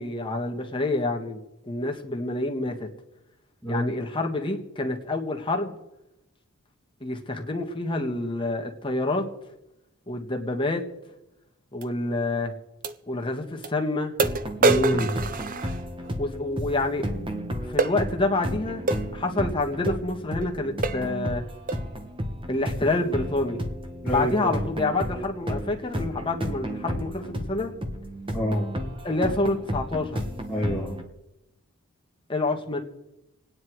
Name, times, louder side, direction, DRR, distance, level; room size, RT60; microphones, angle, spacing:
voice 1, 0.0-1.4 1.7-2.9 3.7-5.8 7.0-9.3 10.1-10.8 11.7-12.5 13.1-14.1 16.2-17.1 17.6-18.8 19.1-21.4 22.5-23.6 24.1-27.7 29.0-30.2 32.3-32.8, left 2 dB, 25° left, 1.6 m, -27 dB
voice 2, 3.6-4.0 14.6-15.2 24.0-24.5 28.3-28.7 30.5-31.0, equal, ahead, 2.4 m, -27 dB
sound 1, 11.8-11.9 12.8-13.0 13.6-13.7 14.2-16.1 17.8-18.0 18.9-19.1 19.9-20.0 20.4-20.5 20.8-21.1 21.7-21.9, right 3 dB, 40° right, 0.6 m, -25 dB
sound 2, 14.2-31.0, equal, 25° right, 1.3 m, -33 dB
26.5 x 9.7 x 4.8 m
head